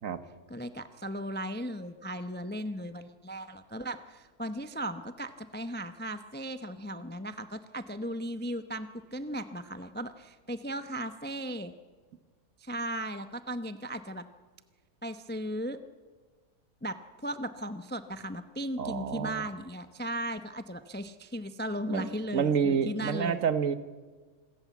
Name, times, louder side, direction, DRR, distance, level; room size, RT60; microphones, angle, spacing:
voice 1, 0.5-11.7 12.6-14.2 15.0-15.8 16.8-23.4, equal, 10° left, 10 dB, 0.5 m, -36 dB
voice 2, 18.8-19.4 21.9-22.0 22.3-23.7, right 7 dB, 65° right, 12 dB, 1.4 m, -28 dB
26.0 x 14.5 x 8.3 m, 1.4 s
omnidirectional pair, 1.6 m